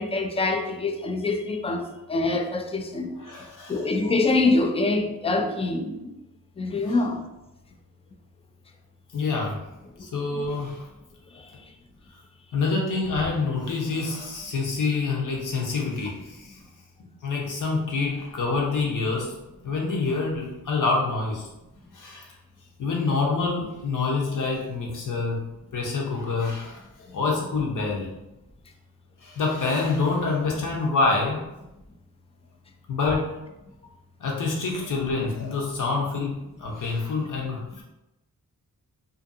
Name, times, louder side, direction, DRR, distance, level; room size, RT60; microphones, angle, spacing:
voice 1, 0.0-3.1 3.7-6.0 6.6-7.2, left 3 dB, 15° left, 4 dB, 0.3 m, -25 dB
voice 2, 3.2-3.8 6.8-7.0 9.1-9.6 10.0-10.8 12.5-16.6 17.2-19.3 19.6-21.5 21.9-22.3 22.8-25.4 25.7-26.8 27.1-28.1 29.2-31.5 32.9-33.4 34.2-37.8, left 3 dB, 55° left, -1 dB, 0.8 m, -26 dB
2.6 x 2.5 x 2.6 m, 0.94 s
cardioid pair, 70°, 37 cm